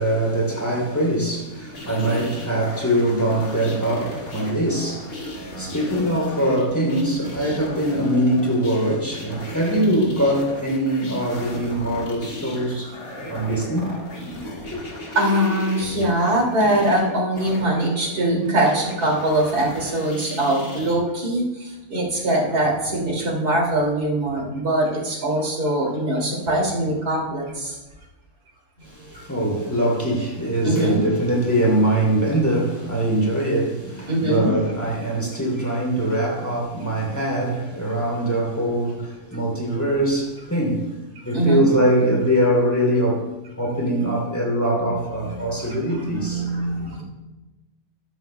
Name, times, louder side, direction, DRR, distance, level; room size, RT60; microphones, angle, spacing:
voice 1, 0.0-14.0 28.8-41.0 41.2-43.3 43.6-46.5, right 1 dB, 10° left, 3.1 m, -22 dB
sound 1, 1.7-21.0, left 1 dB, 70° left, 2.5 m, -35 dB
voice 2, 15.1-27.8 29.1-29.2 30.6-31.0 34.1-34.5 41.3-41.6 45.2-47.0, right 1 dB, 85° right, 3.1 m, -22 dB
13.5 x 12.0 x 2.3 m
omnidirectional pair, 1.6 m